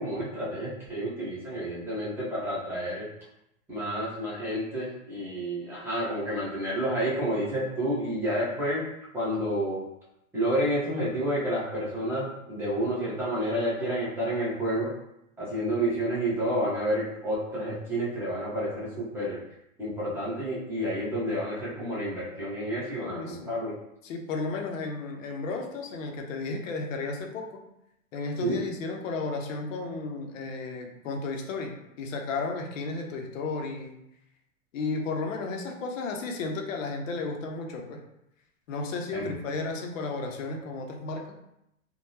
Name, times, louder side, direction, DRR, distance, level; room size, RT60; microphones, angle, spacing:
voice 1, 0.0-3.1 3.7-8.8 9.1-9.8 10.3-14.9 15.4-19.4 19.8-23.7 28.4-28.6 39.1-39.4, equal, 5° right, -9 dB, 0.9 m, -30 dB
voice 2, 23.0-23.5 24.0-27.6 28.1-34.0 34.7-38.0 38.7-41.3, left 3 dB, 70° left, 3 dB, 0.7 m, -33 dB
3.6 x 2.2 x 2.7 m, 0.82 s
hypercardioid pair, 150°, 41 cm